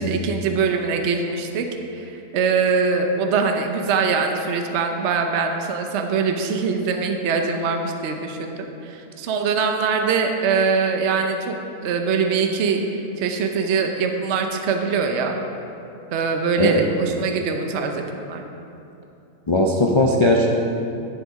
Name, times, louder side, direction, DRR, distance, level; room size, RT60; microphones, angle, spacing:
voice 1, 0.0-1.7 1.9-11.6 11.8-15.4 16.1-18.4, right 5 dB, 55° right, 4 dB, 1.0 m, -23 dB
voice 2, 19.5-20.5, left 1 dB, 50° left, -1 dB, 0.3 m, -18 dB
11.5 x 6.7 x 4.7 m, 2.8 s
omnidirectional pair, 1.5 m